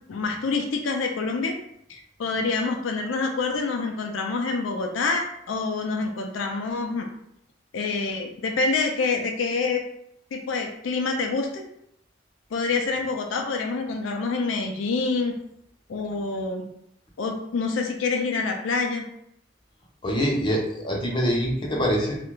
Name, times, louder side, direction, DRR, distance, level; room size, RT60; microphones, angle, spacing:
voice 1, 0.1-1.6 1.9-7.1 7.7-9.8 10.3-11.6 12.5-15.4 15.9-16.7 17.2-19.1, left 4 dB, 85° left, 2 dB, 0.4 m, -26 dB
voice 2, 20.0-22.2, equal, 25° left, -2 dB, 0.6 m, -24 dB
2.4 x 2.1 x 3.0 m, 0.75 s
head